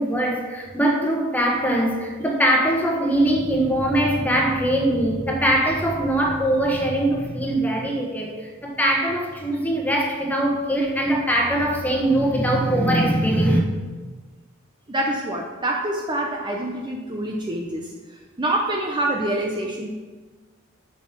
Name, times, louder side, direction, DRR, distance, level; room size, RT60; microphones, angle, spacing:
voice 1, 0.0-13.6, right 1 dB, 10° left, -1 dB, 1.4 m, -21 dB
voice 2, 14.9-19.9, right 1 dB, 20° right, 0 dB, 0.7 m, -26 dB
7.3 x 6.5 x 6.0 m, 1.4 s
head